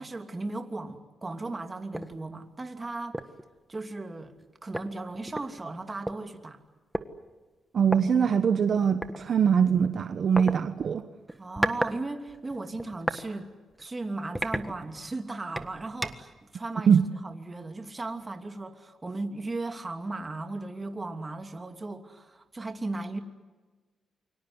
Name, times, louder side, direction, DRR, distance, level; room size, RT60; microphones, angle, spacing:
voice 1, 0.0-3.2 3.7-4.3 4.6-6.6 11.4-13.5 13.8-23.2, right 2 dB, 25° right, 6 dB, 2.8 m, -36 dB
sound 1, 1.9-2.1 2.6-2.7 3.1-3.4 4.4-4.5 4.7-6.2 6.9-7.1 7.8-8.0 9.0-9.2 10.4-10.6 11.3-12.0 12.3-13.2 13.7-13.9 14.3-15.1 15.6-16.3, right 1 dB, 5° right, 1.5 m, -32 dB
voice 2, 7.7-11.0 16.9-17.0, right 7 dB, 55° right, 9 dB, 1.2 m, -22 dB
29.0 x 24.5 x 8.1 m, 1.3 s
cardioid pair, 95°, 0 cm